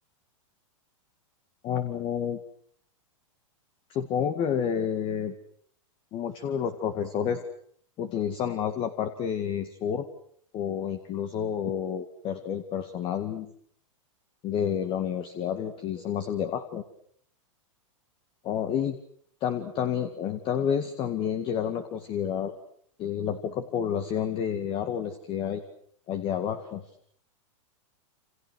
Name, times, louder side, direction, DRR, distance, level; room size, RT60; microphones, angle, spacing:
voice 1, 1.6-2.4 3.9-5.3 6.1-7.4 8.0-10.1 10.5-13.5 14.4-16.8 18.4-19.0 19.4-22.5 23.0-25.6 26.1-26.9, left 8 dB, 30° left, 9 dB, 2.1 m, -29 dB
28.5 x 27.5 x 6.4 m, 0.63 s
hypercardioid pair, 145°, 17 cm